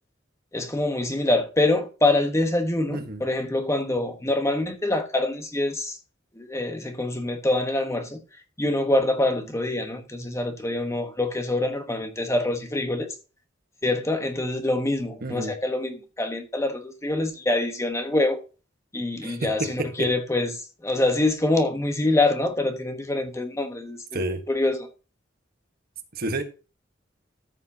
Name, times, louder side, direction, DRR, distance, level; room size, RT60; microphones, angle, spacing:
voice 1, 0.5-6.0 6.3-8.2 8.6-13.1 13.8-18.4 18.9-24.9, left 2 dB, 15° left, 1.1 m, -25 dB
voice 2, 15.2-15.5 19.2-19.9 24.1-24.4 26.1-26.4, right 2 dB, 55° right, 1.4 m, -29 dB
14.0 x 6.5 x 2.8 m
head